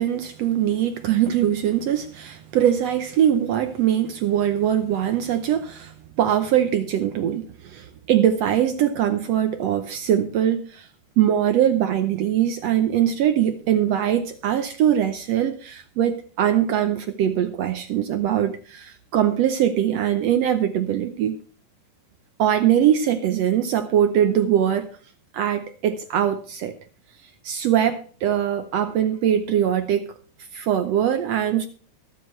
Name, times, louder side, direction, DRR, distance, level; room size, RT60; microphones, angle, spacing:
voice 1, 0.0-10.9 11.2-21.4 22.4-24.9 25.3-26.7 27.4-30.1 30.5-31.7, right 10 dB, 80° right, 8 dB, 1.5 m, -22 dB
22.5 x 7.4 x 3.2 m, 0.43 s
omnidirectional pair, 3.9 m